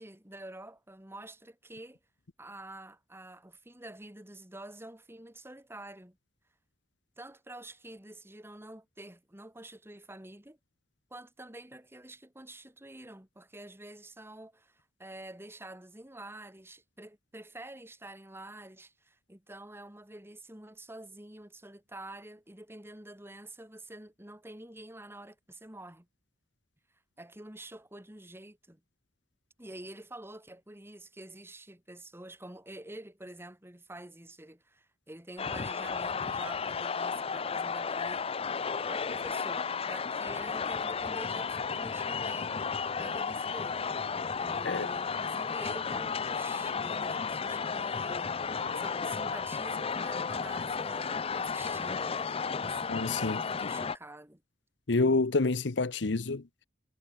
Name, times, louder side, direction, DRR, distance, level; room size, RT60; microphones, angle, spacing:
voice 1, 0.0-2.0 2.4-6.2 7.2-10.6 11.1-26.1 27.2-28.8 29.6-38.3 38.9-42.6 43.0-43.9 44.4-48.3 48.7-54.4, right 1 dB, 15° right, 2.7 m, -48 dB
sound 1, 35.4-54.0, left 5 dB, 30° left, 0.6 m, -33 dB
voice 2, 52.9-53.4 54.9-56.4, left 3 dB, 70° left, 0.9 m, -28 dB
head